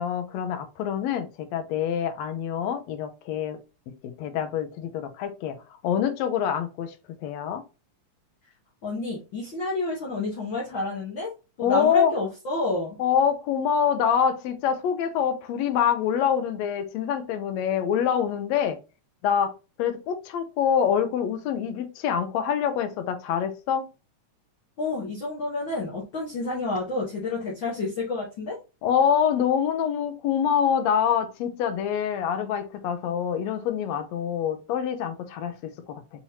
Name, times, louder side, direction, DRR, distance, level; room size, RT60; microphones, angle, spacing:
voice 1, 0.0-3.6 3.9-5.6 5.8-7.0 7.2-7.6 11.6-12.2 13.0-18.8 19.2-19.5 19.8-23.9 28.8-36.0, left 8 dB, 80° left, 1.8 m, -25 dB
voice 2, 8.8-11.3 11.6-13.0 24.8-28.6, left 2 dB, 55° left, 1.4 m, -29 dB
5.6 x 3.0 x 2.7 m
omnidirectional pair, 3.3 m